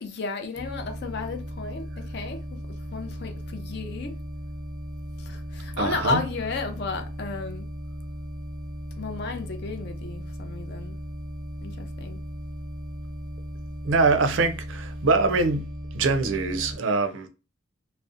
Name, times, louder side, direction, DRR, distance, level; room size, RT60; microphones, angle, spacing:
voice 1, 0.0-4.1 5.2-7.7 9.0-11.0 11.6-12.2, left 4 dB, 55° left, 0.4 m, -33 dB
Shepard Note D, 0.5-16.8, equal, 15° right, 0.5 m, -37 dB
voice 2, 5.8-6.2 13.9-15.7 15.9-17.3, right 3 dB, 65° right, 0.4 m, -23 dB
2.6 x 2.0 x 2.4 m
head